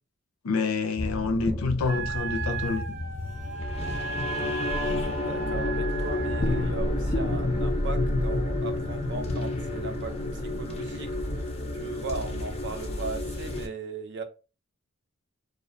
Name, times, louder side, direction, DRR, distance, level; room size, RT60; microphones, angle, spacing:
voice 1, 0.4-2.8, left 4 dB, 90° left, 0.5 m, -27 dB
sound 1, 1.0-13.7, left 1 dB, 30° left, 0.4 m, -30 dB
Wind instrument woodwind instrument, 1.9-6.7, right 5 dB, 85° right, 0.8 m, -36 dB
voice 2, 4.9-11.2 11.7-14.2, right 3 dB, 55° right, 0.5 m, -38 dB
2.3 x 2.2 x 2.6 m
head